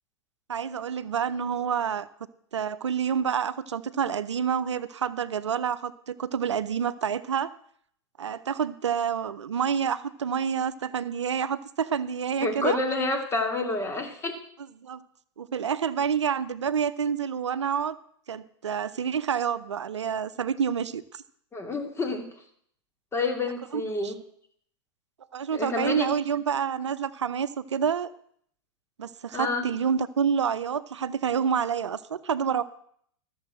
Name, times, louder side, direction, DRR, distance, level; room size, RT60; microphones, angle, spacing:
voice 1, 0.5-2.1 2.5-7.5 8.2-12.8 14.8-15.0 15.4-18.0 18.3-21.2 23.7-24.1 25.3-28.1 29.0-32.6, right 7 dB, 90° right, 15 dB, 0.6 m, -28 dB
voice 2, 12.4-14.3 21.5-22.3 23.1-24.1 25.5-26.1 29.3-29.6, left 3 dB, 15° left, 4 dB, 2.6 m, -28 dB
13.5 x 7.1 x 7.5 m, 0.65 s
hypercardioid pair, 105°, 15 cm